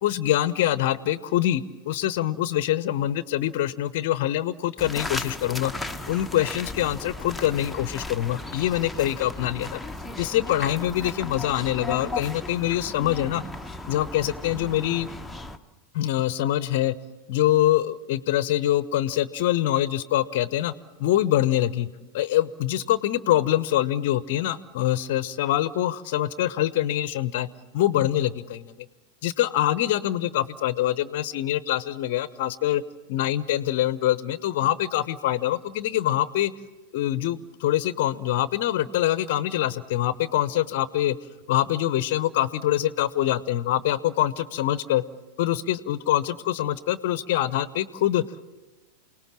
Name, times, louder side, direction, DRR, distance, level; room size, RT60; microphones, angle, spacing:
voice 1, 0.0-5.7 6.1-9.8 10.2-13.4 13.9-15.1 15.9-16.9 17.3-20.7 21.0-21.9 22.1-27.5 27.7-28.7 29.2-32.8 33.1-36.5 36.9-41.1 41.5-45.0 45.4-48.5, left 13 dB, 50° left, 17 dB, 0.8 m, -24 dB
sound 1, 4.8-15.6, left 2 dB, 5° left, 1.1 m, -36 dB
28.5 x 19.0 x 7.4 m, 1.2 s
figure-of-eight pair, 90°, 0 cm